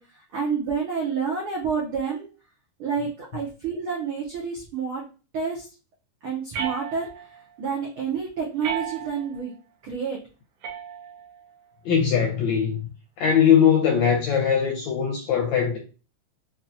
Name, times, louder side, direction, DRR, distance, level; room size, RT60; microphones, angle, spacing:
voice 1, 0.0-2.3 2.8-5.0 5.3-5.7 6.2-9.5 9.8-10.2, right 6 dB, 90° right, 1.2 m, -29 dB
sound 1, 6.5-7.4 8.6-9.4 10.6-11.4, right 8 dB, 70° right, 1.6 m, -34 dB
voice 2, 11.8-12.9 13.2-15.8, left 8 dB, 80° left, 1.6 m, -20 dB
5.7 x 2.3 x 2.7 m
omnidirectional pair, 3.8 m